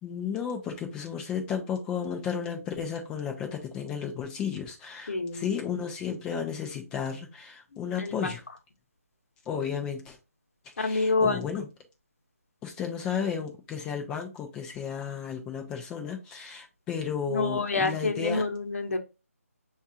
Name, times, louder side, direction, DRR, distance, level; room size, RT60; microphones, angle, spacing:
voice 1, 0.0-8.4 9.5-10.2 10.8-11.7 12.6-18.4, left 7 dB, 10° left, 0.4 m, -33 dB
voice 2, 5.1-5.5 8.0-8.3 10.8-11.4 17.3-19.0, left 3 dB, 60° left, 1.0 m, -27 dB
6.2 x 2.4 x 2.7 m
figure-of-eight pair, 155°, 8 cm